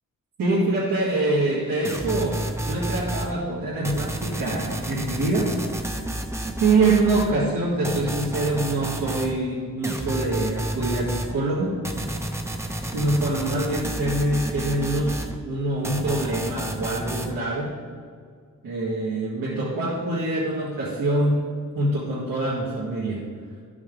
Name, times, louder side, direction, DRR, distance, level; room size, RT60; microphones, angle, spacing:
voice 1, 0.4-5.9 6.6-11.8 12.9-17.7 18.6-21.5 21.7-23.2, right 2 dB, 90° right, -8 dB, 2.0 m, -25 dB
sound 1, 1.8-3.3 3.8-7.3 7.8-9.3 9.8-11.3 11.8-15.3 15.8-17.3, right 1 dB, 10° right, 0.6 m, -30 dB
12.5 x 6.1 x 3.8 m, 2.1 s
wide cardioid pair, 160°, 33 cm